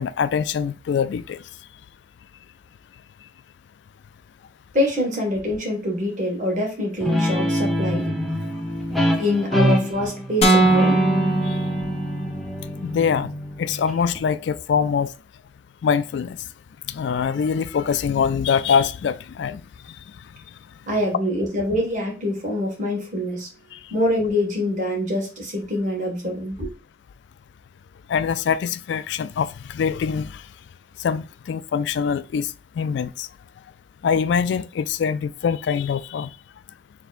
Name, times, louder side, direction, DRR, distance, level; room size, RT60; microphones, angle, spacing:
voice 1, 0.0-1.4 9.5-9.6 11.5-11.6 12.8-13.3 13.6-15.1 15.8-16.4 16.9-19.6 23.7-23.8 28.1-30.4 31.0-32.5 32.8-33.3 34.0-36.3, left 6 dB, 70° left, 0.3 m, -23 dB
voice 2, 4.7-8.1 9.2-11.0 20.9-23.5 23.9-26.7, left 1 dB, 40° right, 1.7 m, -25 dB
Guitar, 7.0-14.2, equal, ahead, 0.8 m, -25 dB
sound 1, 10.4-12.5, right 2 dB, 35° left, 0.8 m, -20 dB
4.4 x 3.4 x 2.5 m
head